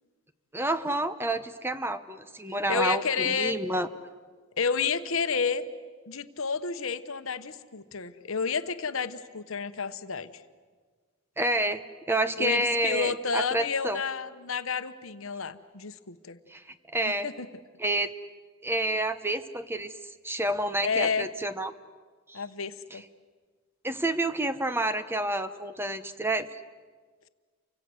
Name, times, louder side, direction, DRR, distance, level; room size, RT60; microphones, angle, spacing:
voice 1, 0.5-3.9 11.4-11.8 12.1-14.0 16.5-16.6 16.9-17.3 17.8-18.1 18.6-21.7 22.3-22.4 22.9-23.0 23.8-26.5, right 1 dB, 10° right, 11 dB, 0.8 m, -29 dB
voice 2, 2.7-3.5 4.6-5.6 6.1-10.3 12.4-16.4 17.2-17.5 20.8-21.3 22.3-23.0, left 5 dB, 65° left, 11 dB, 1.1 m, -30 dB
29.5 x 25.0 x 7.9 m, 1.5 s
head